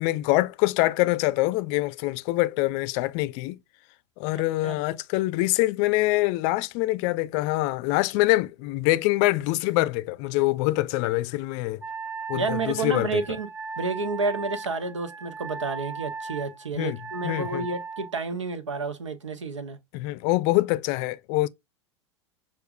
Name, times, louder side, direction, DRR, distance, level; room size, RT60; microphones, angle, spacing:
voice 1, 0.0-3.6 4.2-11.8 12.3-13.1 16.8-17.0 17.2-17.7 19.9-21.5, left 19 dB, 50° left, 0.4 m, -24 dB
voice 2, 4.3-4.8 12.3-13.5 13.8-19.8, right 4 dB, 90° right, 0.9 m, -30 dB
Wind instrument woodwind instrument, 11.8-18.1, right 4 dB, 15° right, 0.5 m, -37 dB
6.7 x 2.5 x 2.4 m
hypercardioid pair, 95°, 15 cm